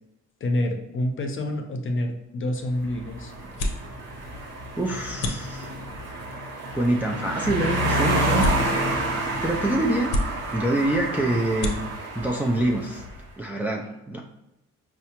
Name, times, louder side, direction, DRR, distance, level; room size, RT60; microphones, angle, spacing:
voice 1, 0.4-3.3, left 1 dB, 40° left, 3 dB, 0.6 m, -27 dB
sound 1, 2.1-13.7, left 1 dB, 80° left, 0.6 m, -35 dB
sound 2, 2.8-13.1, right 1 dB, 55° right, 0.8 m, -29 dB
voice 2, 4.8-5.7 6.7-8.5 9.4-10.2 10.5-11.8 12.1-13.0 13.4-14.2, right 1 dB, 5° right, 0 dB, 0.4 m, -25 dB
4.6 x 2.1 x 2.9 m, 0.90 s
cardioid pair, 90°, 30 cm